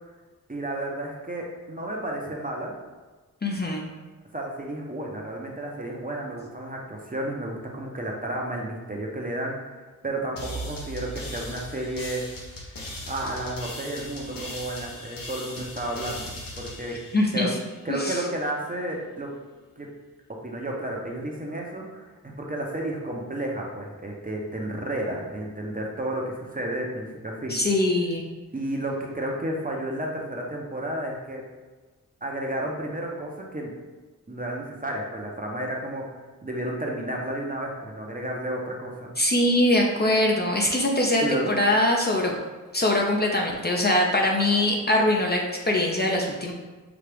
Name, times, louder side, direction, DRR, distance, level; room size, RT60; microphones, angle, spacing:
voice 1, 0.5-2.7 4.3-12.2 13.1-17.0 17.3-17.5 17.8-19.3 19.8-19.9 20.4-22.0 22.4-27.6 28.5-31.4 32.2-33.7 34.3-36.0 36.4-39.1 41.2-41.5, right 1 dB, 25° right, -1 dB, 0.7 m, -32 dB
voice 2, 3.4-3.8 17.1-17.5 17.9-18.2 27.5-28.2 39.2-42.4 42.7-46.5, left 1 dB, 30° left, -1 dB, 0.6 m, -22 dB
sound 1, 10.4-17.9, left 1 dB, 85° left, 0.9 m, -38 dB
5.9 x 2.4 x 3.3 m, 1.3 s
wide cardioid pair, 85°, 33 cm